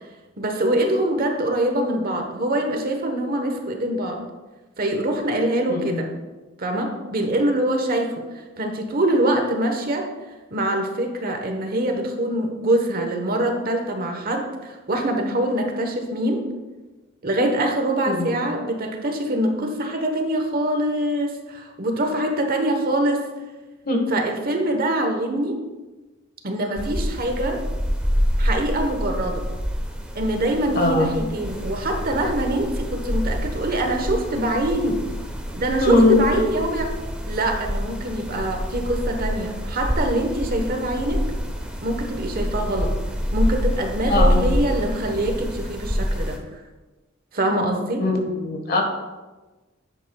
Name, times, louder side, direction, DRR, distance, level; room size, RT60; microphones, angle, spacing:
voice 1, 0.4-4.2 4.8-6.1 6.6-8.1 8.6-10.1 10.5-16.4 17.2-23.2 24.1-25.6 26.4-27.6 28.4-29.5 30.1-35.0 35.5-36.9 37.3-41.2 41.8-42.9 43.3-46.4 47.3-48.0, right 1 dB, 45° right, 4 dB, 1.0 m, -24 dB
voice 2, 5.7-6.0 18.0-18.4 23.8-24.0 30.7-31.1 35.8-36.2 44.1-44.6 48.0-48.8, left 2 dB, 50° left, 3 dB, 1.4 m, -20 dB
sound 1, 26.8-46.4, equal, 5° right, 0.9 m, -26 dB
10.5 x 8.1 x 2.3 m, 1.2 s
head